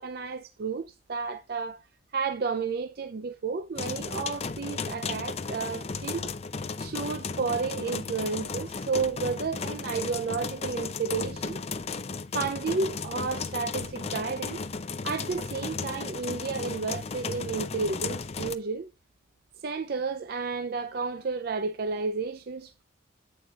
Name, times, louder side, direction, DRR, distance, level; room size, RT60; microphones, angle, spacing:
voice 1, 0.0-1.8 2.1-6.3 6.8-11.6 12.3-14.7 15.0-18.9 19.6-22.8, right 4 dB, 50° right, 0.4 m, -32 dB
sound 1, 3.8-18.6, left 4 dB, 30° left, 0.5 m, -35 dB
8.7 x 6.6 x 2.3 m
head